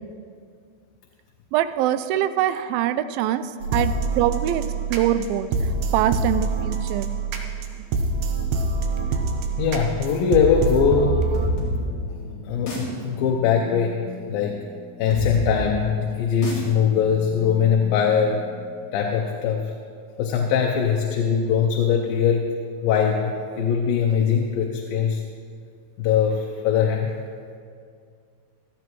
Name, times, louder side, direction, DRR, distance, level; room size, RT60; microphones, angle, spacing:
voice 1, 1.5-4.6 4.9-5.5 5.9-7.1, right 11 dB, 90° right, 12 dB, 2.3 m, -23 dB
sound 1, 3.6-11.5, right 3 dB, 75° right, 2.4 m, -25 dB
voice 2, 9.6-11.4 12.5-14.0 14.3-14.6 15.0-18.4 18.9-19.7 20.2-22.5 22.8-25.2 26.0-27.1, left 7 dB, 85° left, 2 dB, 2.5 m, -21 dB
sound 2, 11.3-18.7, left 1 dB, 50° left, 3.6 m, -32 dB
16.0 x 13.5 x 3.1 m, 2.2 s
omnidirectional pair, 4.1 m